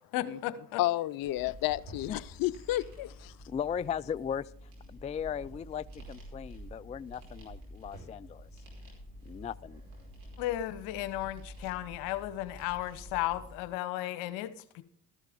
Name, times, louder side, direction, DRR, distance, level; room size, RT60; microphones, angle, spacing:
voice 1, 0.1-0.8 10.4-14.8, left 14 dB, 75° left, 1.0 m, -34 dB
voice 2, 0.8-3.4, left 16 dB, 55° left, 0.6 m, -31 dB
sound 1, 1.2-13.6, equal, 90° right, 5.1 m, -49 dB
voice 3, 3.5-8.5 9.2-9.8, left 8 dB, 20° left, 0.3 m, -37 dB
13.5 x 11.5 x 3.6 m
hypercardioid pair, 60°, 41 cm